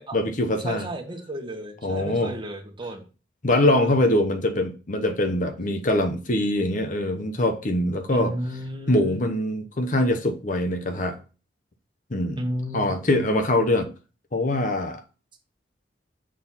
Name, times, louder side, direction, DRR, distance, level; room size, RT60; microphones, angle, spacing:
voice 1, 0.1-0.9 1.8-2.3 3.4-8.3 8.9-11.2 12.1-12.4 12.7-13.9 14.3-15.0, left 1 dB, 45° left, 0.8 m, -23 dB
voice 2, 0.6-3.0 3.6-4.0 8.1-9.2 12.4-12.9, right 1 dB, 25° right, 1.4 m, -33 dB
6.3 x 4.2 x 5.6 m
head